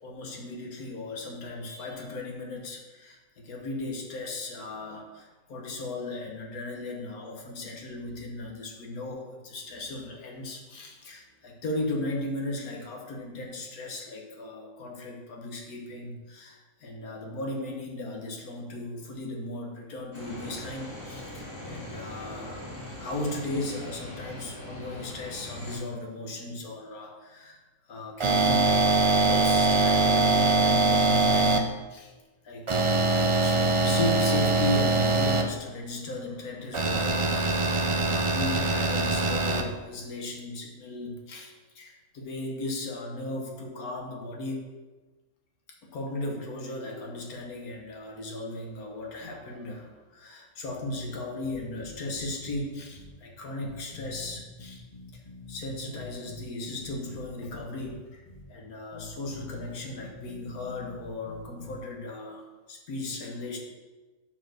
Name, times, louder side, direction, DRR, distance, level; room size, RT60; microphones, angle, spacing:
voice 1, 0.0-22.7 23.0-32.1 32.4-37.5 38.0-44.7 45.9-54.8 55.1-55.2 55.5-58.2 58.5-63.6, left 2 dB, 90° left, 1 dB, 1.7 m, -36 dB
sound 1, 20.1-25.8, left 1 dB, 65° left, 3.1 m, -41 dB
sound 2, 28.2-31.6 32.7-35.4 36.7-39.6, right 3 dB, 40° right, 0.4 m, -23 dB
sound 3, 51.4-52.6 52.9-53.1 53.6-56.4 56.8-57.9 58.3-58.4 58.9-61.8, left 4 dB, 25° left, 1.8 m, -45 dB
8.0 x 4.6 x 6.3 m, 1.2 s
omnidirectional pair, 1.5 m